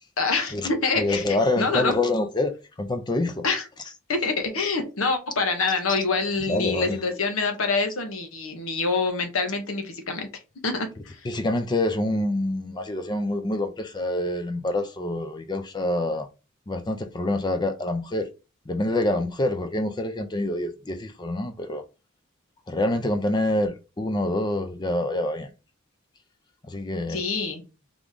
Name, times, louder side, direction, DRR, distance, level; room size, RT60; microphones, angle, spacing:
voice 1, 0.2-1.9 3.4-3.6 4.1-10.3 10.6-11.3 27.1-27.6, left 4 dB, 90° left, 1.2 m, -26 dB
voice 2, 1.0-2.5 2.8-3.4 6.5-7.0 11.2-16.3 16.7-18.3 18.7-21.8 22.7-25.5 26.7-27.2, left 1 dB, 20° left, 0.4 m, -26 dB
3.6 x 3.6 x 3.7 m
head